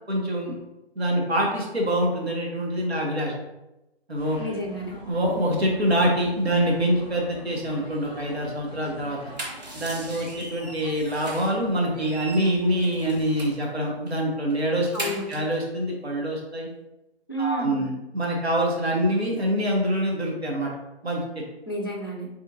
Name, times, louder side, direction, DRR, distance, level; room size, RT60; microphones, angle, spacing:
voice 1, 0.1-0.6 0.9-3.3 4.1-4.4 5.1-9.2 9.7-14.9 15.3-16.7 17.4-20.7 21.0-21.4, equal, 75° right, -2 dB, 1.5 m, -25 dB
sound 1, 4.1-13.5, equal, 5° left, 1.4 m, -44 dB
voice 2, 4.4-5.0 14.9-15.3 17.3-17.8 21.7-22.3, right 1 dB, 20° left, 0 dB, 0.5 m, -30 dB
sound 2, 9.1-11.6 11.9-13.7 14.1-14.2 14.5-15.5, right 1 dB, 40° right, 1.0 m, -38 dB
5.4 x 3.6 x 2.5 m, 0.95 s
figure-of-eight pair, 155°, 32 cm